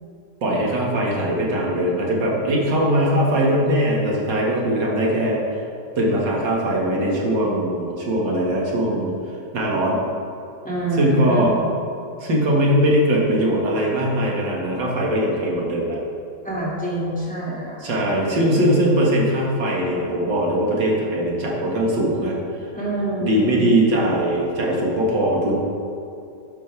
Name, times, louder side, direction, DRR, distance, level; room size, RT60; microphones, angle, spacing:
voice 1, 0.4-5.6 6.0-9.1 9.5-10.0 10.9-11.5 12.2-16.0 17.8-22.7 23.2-25.6, right 1 dB, 90° right, -3 dB, 2.5 m, -21 dB
voice 2, 10.6-11.7 16.4-17.8 22.7-23.6, right 1 dB, 5° left, -6 dB, 2.2 m, -26 dB
13.0 x 10.0 x 3.4 m, 2.7 s
omnidirectional pair, 1.9 m